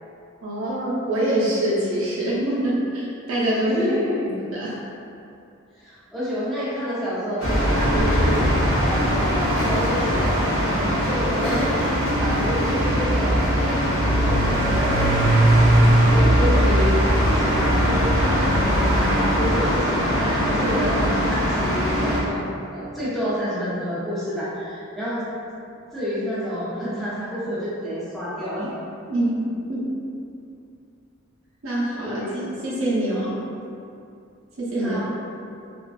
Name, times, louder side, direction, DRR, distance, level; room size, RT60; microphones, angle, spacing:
voice 1, 0.4-3.9 4.5-4.8 29.1-29.9 31.6-33.4 34.6-35.0, right 1 dB, 80° right, -7 dB, 0.6 m, -25 dB
voice 2, 3.7-4.3 5.7-11.6 12.2-13.8 14.2-15.1 15.8-16.9 17.3-25.2 25.9-28.7 32.0-32.4 34.8-35.0, equal, ahead, -12 dB, 0.6 m, -29 dB
sound 1, 7.4-22.2, equal, 70° left, 0.7 m, -20 dB
sound 2, 11.8-19.8, right 1 dB, 40° left, 1.0 m, -35 dB
2.4 x 2.2 x 2.3 m, 2.6 s
head